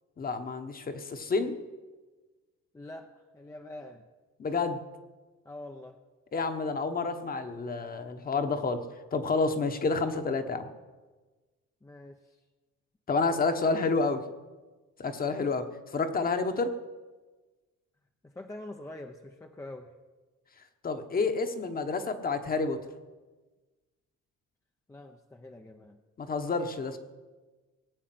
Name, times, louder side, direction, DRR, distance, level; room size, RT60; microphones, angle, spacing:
voice 1, 0.2-1.5 4.4-4.8 6.3-8.8 9.1-10.7 13.1-14.2 15.0-15.6 15.9-16.7 20.8-22.8 26.2-27.0, left 4 dB, 30° left, 8 dB, 1.2 m, -29 dB
voice 2, 2.7-4.0 5.4-6.0 11.8-12.4 15.2-15.6 18.2-19.9 24.9-26.0, left 1 dB, 10° left, 4 dB, 0.7 m, -45 dB
19.0 x 8.8 x 7.8 m, 1.3 s
cardioid pair, 155°, 30 cm